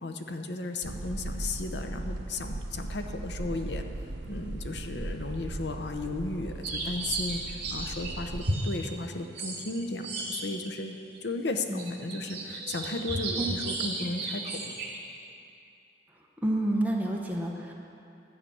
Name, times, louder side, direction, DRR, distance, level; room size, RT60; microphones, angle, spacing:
voice 1, 0.0-3.8 4.3-14.7, left 2 dB, 75° left, 5 dB, 0.7 m, -35 dB
sound 1, 0.8-8.4, right 2 dB, 80° right, 0.8 m, -38 dB
sound 2, 6.6-10.8 11.1-11.2 11.7-15.0, right 2 dB, 60° right, 2.4 m, -34 dB
voice 2, 16.4-17.7, right 1 dB, 10° right, -1 dB, 1.0 m, -29 dB
12.0 x 5.8 x 8.4 m, 2.7 s
head